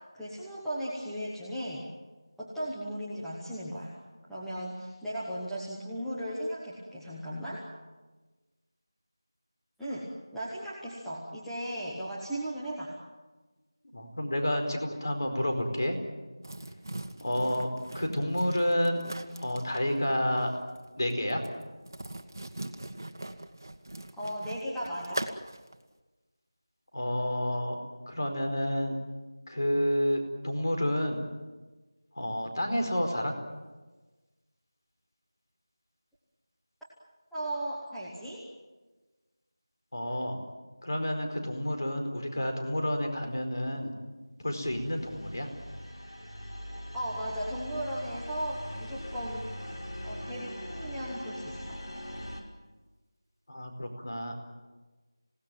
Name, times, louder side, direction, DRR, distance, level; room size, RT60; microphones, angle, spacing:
voice 1, 0.0-1.9 2.4-4.0 4.3-7.7 9.8-12.9 24.2-25.2 37.3-38.5 46.9-49.7 50.0-51.8, equal, ahead, -12 dB, 1.0 m, -36 dB
voice 2, 13.9-16.0 17.2-19.0 19.4-20.5 21.0-21.4 26.9-27.8 28.1-28.9 29.5-31.2 32.2-33.3 39.9-40.4 40.8-43.9 44.4-45.5 53.5-54.3, equal, 45° left, 4 dB, 4.6 m, -30 dB
sound 1, 16.4-25.8, right 1 dB, 45° right, 1.6 m, -41 dB
sound 2, 44.6-52.4, equal, 85° left, 5.9 m, -41 dB
27.5 x 18.0 x 9.2 m, 1.2 s
figure-of-eight pair, 180°, 3 cm